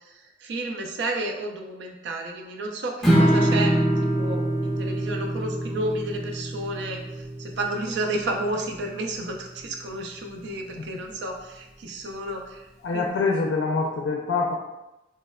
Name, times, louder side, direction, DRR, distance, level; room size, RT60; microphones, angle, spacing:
voice 1, 0.4-3.7 4.0-7.0 7.4-12.6 12.9-13.3, right 1 dB, 70° right, 2 dB, 0.4 m, -31 dB
Strum, 3.0-9.3, right 1 dB, ahead, 0.7 m, -25 dB
voice 2, 12.8-14.5, left 4 dB, 85° left, 0 dB, 0.4 m, -25 dB
3.2 x 2.1 x 2.2 m, 0.94 s
head